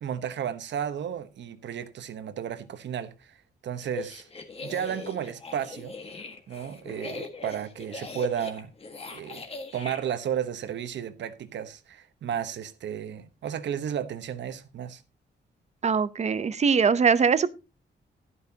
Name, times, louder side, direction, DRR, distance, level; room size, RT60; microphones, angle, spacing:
voice 1, 0.0-4.3 4.6-6.0 6.5-8.7 9.1-9.4 9.7-15.0, right 9 dB, 80° right, 1.1 m, -33 dB
sound 1, 3.8-10.0, left 3 dB, 35° left, 1.6 m, -40 dB
voice 2, 15.8-17.5, right 6 dB, 40° right, 0.7 m, -22 dB
12.0 x 11.0 x 2.8 m
wide cardioid pair, 155°, 18 cm